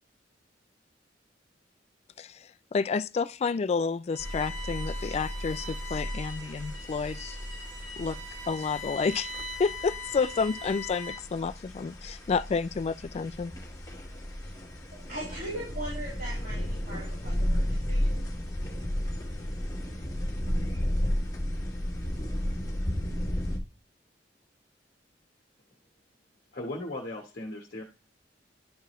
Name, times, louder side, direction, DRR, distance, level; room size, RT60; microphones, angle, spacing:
voice 1, 2.7-7.4 8.0-8.2 8.5-9.3 9.6-13.5, left 5 dB, 35° left, 0.3 m, -30 dB
Bowed string instrument, 4.1-11.4, left 1 dB, 45° right, 1.6 m, -41 dB
sound 1, 4.2-23.6, equal, 20° left, 1.5 m, -33 dB
voice 2, 14.9-18.3, right 1 dB, 70° right, 4.4 m, -40 dB
voice 3, 26.5-27.8, left 1 dB, 55° left, 1.1 m, -37 dB
11.0 x 4.7 x 3.0 m
head